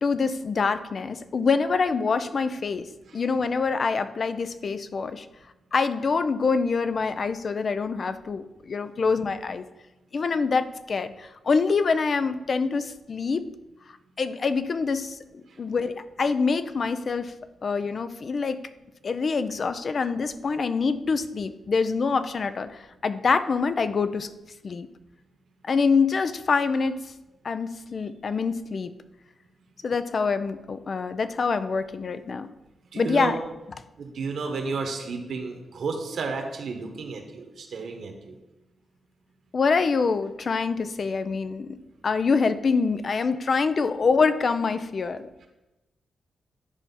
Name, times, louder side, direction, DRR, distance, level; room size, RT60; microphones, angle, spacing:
voice 1, 0.0-5.3 5.7-9.6 10.1-13.4 14.2-17.3 17.6-18.6 19.0-24.3 24.6-24.9 25.7-27.0 27.4-28.9 29.8-32.5 33.0-33.4 39.5-41.8 42.0-45.5, left 4 dB, 50° left, 12 dB, 0.4 m, -25 dB
voice 2, 32.9-33.3 34.0-38.4, right 4 dB, 70° right, 3 dB, 1.3 m, -32 dB
10.0 x 3.4 x 5.5 m, 1.0 s
cardioid pair, 80°, 0 cm